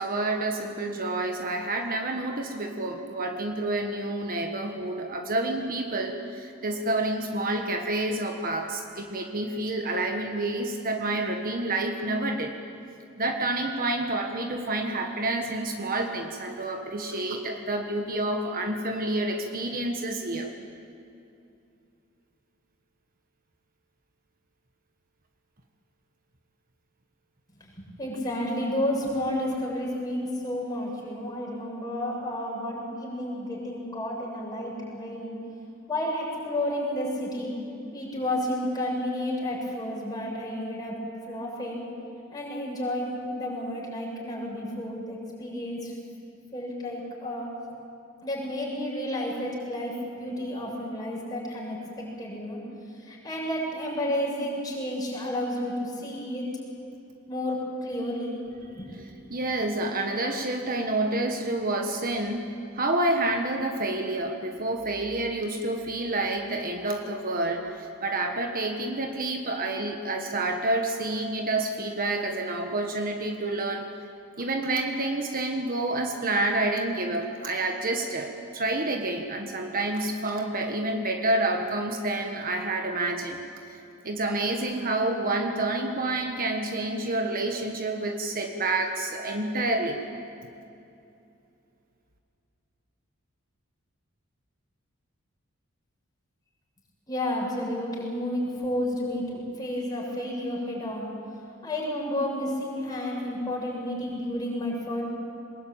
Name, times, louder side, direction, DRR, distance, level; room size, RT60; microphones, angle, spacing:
voice 1, 0.0-12.5 13.2-20.5 58.7-62.4 62.7-73.9 74.4-83.4 83.7-90.0, right 2 dB, 45° right, 4 dB, 1.5 m, -29 dB
voice 2, 27.6-35.4 35.9-37.6 37.9-41.0 41.3-41.8 42.3-45.9 46.5-47.5 48.2-52.6 52.9-56.5 57.3-58.4 58.7-58.9 97.1-101.1 101.6-105.0, left 1 dB, 20° left, -3 dB, 7.0 m, -31 dB
22.5 x 20.5 x 9.0 m, 2.7 s
head